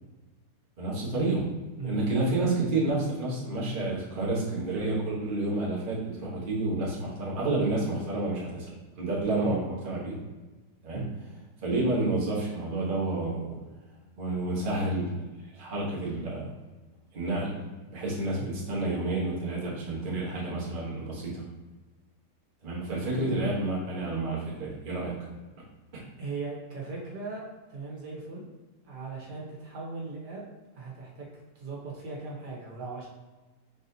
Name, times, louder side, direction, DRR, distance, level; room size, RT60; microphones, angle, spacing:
voice 1, 0.8-1.5 1.8-8.7 9.0-10.2 10.8-11.0 11.6-13.6 14.2-15.1 15.5-16.5 17.1-17.6 17.9-21.4 22.6-25.3 25.9-26.0, right 2 dB, 35° right, -5 dB, 1.2 m, -29 dB
voice 2, 1.8-2.1 9.4-9.6 10.9-11.1 18.4-18.5 23.0-23.2 26.2-27.4 27.7-28.4 28.8-30.5 30.7-31.3 31.5-33.1, right 4 dB, 75° right, -3 dB, 1.6 m, -38 dB
4.8 x 4.1 x 2.7 m, 1.2 s
omnidirectional pair, 1.8 m